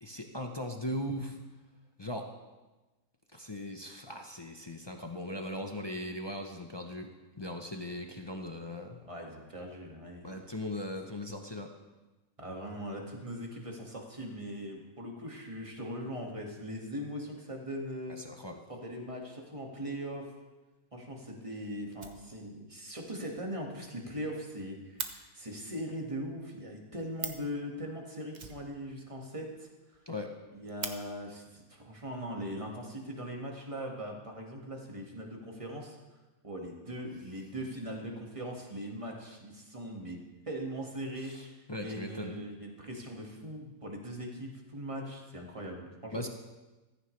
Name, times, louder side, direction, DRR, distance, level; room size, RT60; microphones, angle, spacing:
voice 1, 0.0-1.3 2.0-2.3 3.3-7.1 7.4-9.0 10.2-11.7 18.1-18.6 30.1-30.3 41.2-42.3 46.1-46.3, left 1 dB, 25° left, 3 dB, 0.6 m, -39 dB
voice 2, 9.0-10.3 12.4-18.2 18.7-20.3 20.9-30.0 30.5-36.0 36.4-40.2 40.5-46.3, equal, 20° right, 0 dB, 1.9 m, -40 dB
Fire, 20.7-20.8 21.2-21.3 21.5-21.6 21.9-22.7 23.0-23.1 23.5-23.6 23.8-23.9 24.2-25.1 26.9-27.0 27.1-27.5 28.3-29.2 29.5-29.6 29.9-30.0 30.4-30.9 32.0-32.1 32.7-33.3, right 5 dB, 35° right, 0.8 m, -42 dB
15.0 x 14.5 x 3.3 m, 1.1 s
omnidirectional pair, 1.7 m